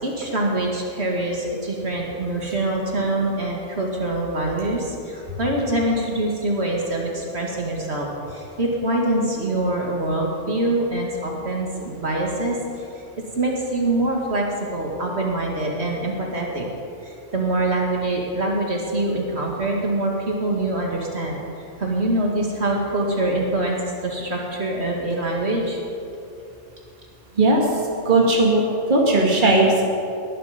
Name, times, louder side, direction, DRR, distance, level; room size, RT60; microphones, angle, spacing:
voice 1, 0.0-12.6 13.3-16.7 17.3-21.4 21.8-25.8, right 1 dB, 60° right, -1 dB, 2.4 m, -24 dB
voice 2, 28.1-29.7, right 2 dB, 40° right, -2 dB, 2.1 m, -17 dB
21.0 x 11.5 x 5.2 m, 2.7 s
omnidirectional pair, 1.2 m